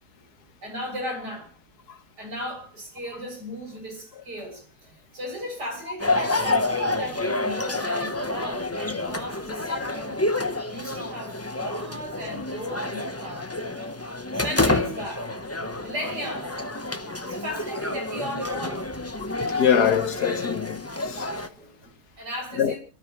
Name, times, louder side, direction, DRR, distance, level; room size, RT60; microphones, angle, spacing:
voice 1, 0.6-1.5 2.2-10.2 10.7-14.0 14.3-15.3 15.8-16.7 17.2-18.9 21.5-21.9 22.2-22.8, equal, 65° right, 7.8 m, -36 dB
sound 1, 6.0-21.5, left 2 dB, 15° left, 0.7 m, -29 dB
voice 2, 19.4-21.3 22.6-22.7, left 8 dB, 65° left, 1.6 m, -23 dB
29.5 x 13.0 x 3.1 m
omnidirectional pair, 1.9 m